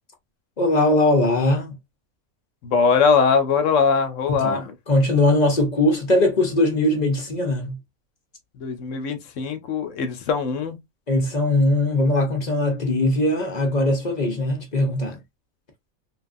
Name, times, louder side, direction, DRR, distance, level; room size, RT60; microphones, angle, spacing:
voice 1, 0.6-1.7 4.3-7.8 11.1-15.2, left 1 dB, 45° left, 0.6 m, -20 dB
voice 2, 2.6-4.7 8.6-10.8, left 5 dB, 70° left, 0.9 m, -21 dB
3.0 x 2.3 x 2.5 m
omnidirectional pair, 1.5 m